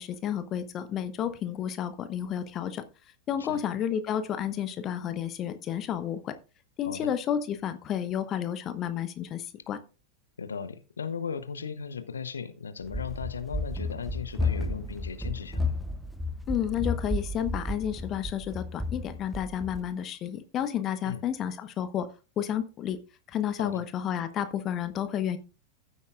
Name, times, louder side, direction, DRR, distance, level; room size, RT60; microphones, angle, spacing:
voice 1, 0.0-2.8 3.3-6.3 6.8-9.8 16.5-22.1 22.4-23.0 23.3-25.4, left 9 dB, 30° left, 11 dB, 1.0 m, -31 dB
voice 2, 10.4-15.7 21.0-21.2 23.6-23.8, left 6 dB, 70° left, 12 dB, 0.8 m, -37 dB
Run, 12.8-19.9, left 2 dB, ahead, 0.7 m, -32 dB
15.0 x 8.3 x 2.4 m, 0.32 s
figure-of-eight pair, 90°, 0 cm